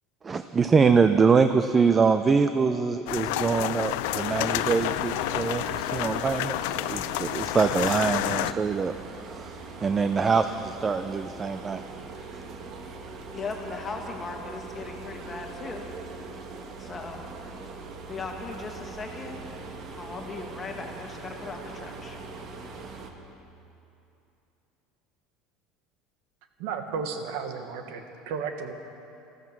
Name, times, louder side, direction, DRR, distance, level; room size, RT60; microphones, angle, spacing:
voice 1, 0.2-8.9 9.3-11.8, right 5 dB, 20° right, 10 dB, 0.5 m, -24 dB
sound 1, 3.1-8.5, left 15 dB, 80° left, 0.4 m, -29 dB
sound 2, 4.0-23.1, right 4 dB, 45° right, 1.4 m, -41 dB
voice 2, 13.3-15.9 16.8-17.3 18.1-19.7 19.9-22.2, left 4 dB, 20° left, 1 dB, 1.9 m, -38 dB
voice 3, 26.6-28.7, right 6 dB, 75° right, 6 dB, 1.4 m, -33 dB
13.5 x 13.5 x 7.5 m, 2.8 s
supercardioid pair, 130°, 0 cm